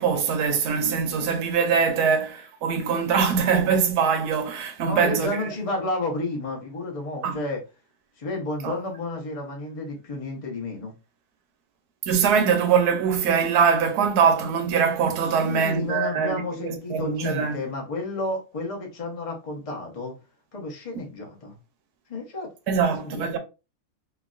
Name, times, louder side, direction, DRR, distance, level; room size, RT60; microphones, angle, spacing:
voice 1, 0.0-5.4 7.2-7.4 8.6-8.7 12.1-17.6 22.7-23.4, right 6 dB, 75° right, 1.1 m, -23 dB
voice 2, 4.8-7.6 8.2-10.9 15.3-20.1 20.5-21.6 22.1-23.4, left 2 dB, 35° left, 0.6 m, -31 dB
3.1 x 2.6 x 2.4 m
omnidirectional pair, 1.8 m